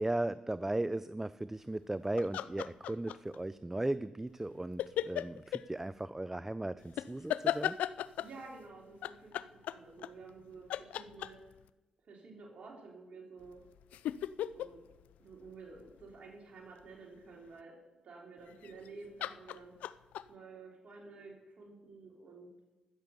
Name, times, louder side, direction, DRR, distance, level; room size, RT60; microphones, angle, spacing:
voice 1, 0.0-7.8, right 1 dB, 15° right, 15 dB, 0.4 m, -36 dB
sound 1, 2.2-3.4 4.8-5.6 7.0-8.4 9.0-10.4 10.7-11.6 13.4-16.1 18.5-18.9 19.2-20.2, left 11 dB, 80° left, 0.3 m, -36 dB
voice 2, 8.2-9.3 9.7-11.4 12.0-13.6 14.5-14.8 15.2-17.8 18.0-19.7 20.3-22.6, right 3 dB, 65° right, -2 dB, 3.0 m, -51 dB
15.0 x 6.9 x 6.7 m, 1.1 s
supercardioid pair, 50°, 2 cm